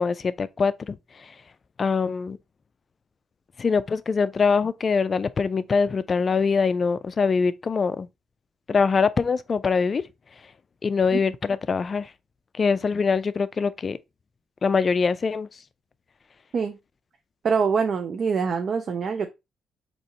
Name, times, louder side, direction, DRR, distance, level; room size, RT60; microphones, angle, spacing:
voice 1, 0.0-1.3 1.8-2.4 3.6-8.1 8.7-10.0 10.8-12.1 12.5-14.0 14.6-15.6, left 5 dB, 40° left, 0.3 m, -23 dB
voice 2, 17.4-19.3, right 5 dB, 55° right, 0.4 m, -24 dB
4.2 x 2.9 x 2.7 m
cardioid pair, 90°, 0 cm